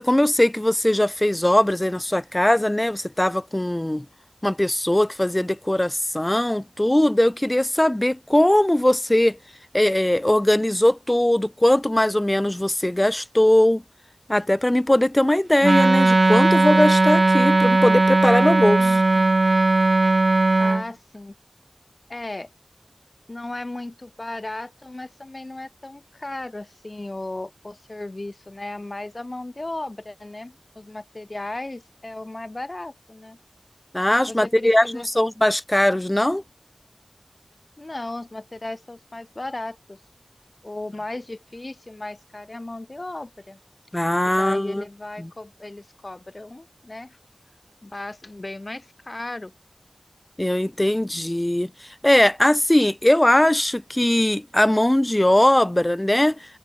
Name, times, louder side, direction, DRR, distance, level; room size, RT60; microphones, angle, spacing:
voice 1, 0.0-4.1 4.4-9.4 9.7-13.8 14.3-18.9 33.9-36.4 43.9-44.8 45.2-45.3 50.4-51.7 52.0-56.4, left 1 dB, 25° left, 0.6 m, -20 dB
Wind instrument woodwind instrument, 15.6-20.8, right 2 dB, 75° right, 0.5 m, -17 dB
voice 2, 18.8-19.4 20.6-21.3 22.1-22.5 23.3-33.4 34.3-35.1 37.8-40.0 40.6-43.6 44.2-47.2 47.8-49.5, left 2 dB, 55° left, 1.4 m, -35 dB
wide cardioid pair, 45°, 0 cm